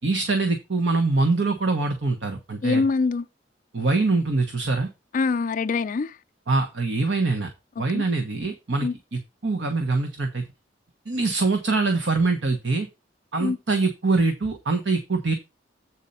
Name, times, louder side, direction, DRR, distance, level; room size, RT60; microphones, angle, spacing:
voice 1, 0.0-2.8 3.7-4.9 6.5-7.5 7.8-10.4 11.1-12.9 13.3-15.3, right 3 dB, 75° right, 1.2 m, -24 dB
voice 2, 2.6-3.3 5.1-6.2 7.8-8.0 8.8-8.9 13.4-13.6, left 4 dB, 45° left, 0.4 m, -24 dB
8.3 x 4.2 x 5.5 m
head